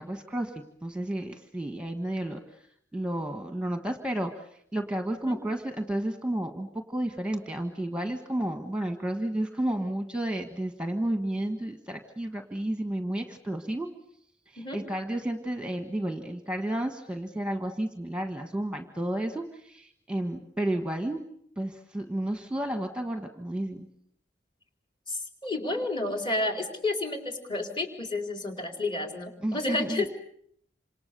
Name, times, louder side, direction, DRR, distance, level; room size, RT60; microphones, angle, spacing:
voice 1, 0.0-2.6 2.9-13.9 14.5-21.2 21.6-23.9 29.4-30.0, right 1 dB, 5° right, 6 dB, 1.4 m, -32 dB
voice 2, 25.1-30.1, left 2 dB, 30° left, 5 dB, 4.2 m, -31 dB
28.0 x 27.0 x 6.8 m, 0.69 s
head